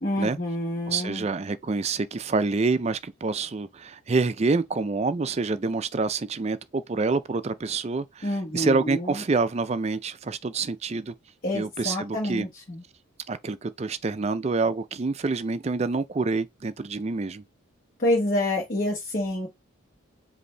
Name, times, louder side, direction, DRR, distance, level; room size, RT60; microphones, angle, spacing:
voice 1, 0.0-1.2 8.2-9.2 11.4-12.8 18.0-19.5, left 1 dB, 45° left, 1.4 m, -27 dB
voice 2, 0.9-11.1 11.5-12.5 13.3-17.4, right 3 dB, 30° right, 0.4 m, -27 dB
5.1 x 2.7 x 3.3 m
head